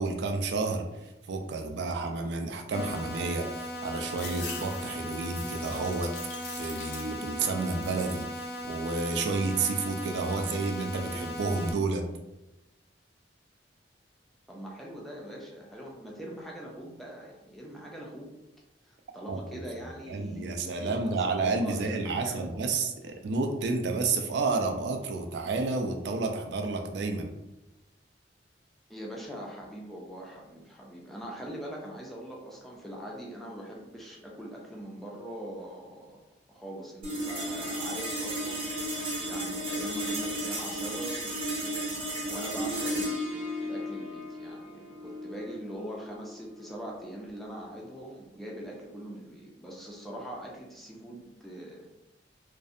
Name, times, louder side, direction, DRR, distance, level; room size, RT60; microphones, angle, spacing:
voice 1, 0.0-12.1 19.3-19.6 20.1-27.3, right 3 dB, 70° right, 5 dB, 0.4 m, -31 dB
sound 1, 2.7-11.7, left 1 dB, 65° left, 0.4 m, -38 dB
sound 2, 4.1-7.4 7.7-8.3 8.8-9.5, left 3 dB, 85° left, 0.8 m, -43 dB
voice 2, 14.5-18.3 18.8-22.6 28.9-36.2 36.5-41.8 42.3-51.9, right 1 dB, ahead, -3 dB, 0.4 m, -42 dB
sound 3, 37.0-47.6, equal, 30° right, 0.8 m, -34 dB
2.5 x 2.1 x 2.4 m, 0.93 s
head